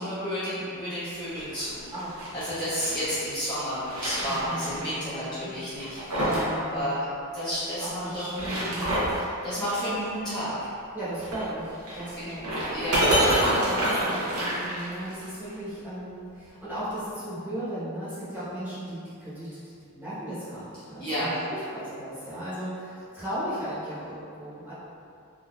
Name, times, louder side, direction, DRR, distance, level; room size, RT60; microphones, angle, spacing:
voice 1, 0.0-1.8 2.3-6.3 6.5-7.0 7.3-10.5 12.2-12.3 12.7-13.0 21.0-21.3, equal, 20° left, -13 dB, 0.7 m, -31 dB
sound 1, 1.3-3.1 3.6-4.8 5.1-5.2 5.7-6.5 6.8-6.9 8.1-9.2 11.2-15.2, right 1 dB, 85° right, 0.9 m, -28 dB
voice 2, 1.9-2.3 4.3-5.6 6.2-7.0 7.8-8.9 10.9-12.6 13.2-19.5 19.9-24.7, right 1 dB, 10° right, -13 dB, 1.0 m, -36 dB
3.7 x 2.6 x 2.3 m, 2.5 s
head